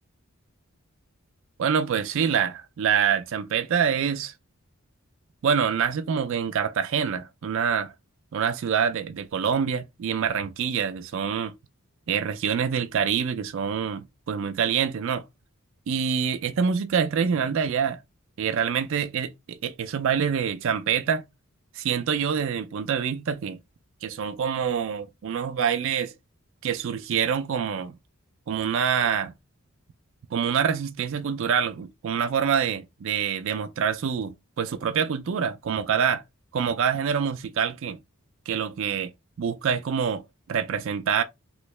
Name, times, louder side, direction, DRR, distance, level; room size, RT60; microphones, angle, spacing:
voice 1, 1.6-4.3 5.4-7.9 8.3-11.5 12.1-15.2 15.9-18.0 18.4-21.2 21.7-23.6 24.0-26.1 26.6-27.9 28.5-29.3 30.3-36.2 36.5-38.0 38.5-39.1 39.4-40.2 40.5-41.2, right 7 dB, 60° right, 0.4 m, -26 dB
3.0 x 2.8 x 3.1 m
head